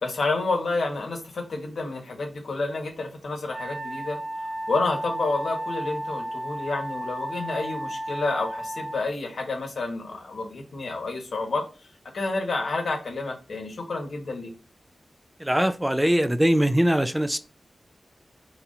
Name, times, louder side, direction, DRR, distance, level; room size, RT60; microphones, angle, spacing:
voice 1, 0.0-4.2 4.7-11.6 12.1-14.5, left 3 dB, 90° left, 1.5 m, -29 dB
Wind instrument woodwind instrument, 3.5-9.0, right 1 dB, 35° right, 0.7 m, -33 dB
voice 2, 15.4-17.4, equal, 10° right, 0.4 m, -21 dB
4.2 x 4.2 x 2.6 m
wide cardioid pair, 110°, 0 cm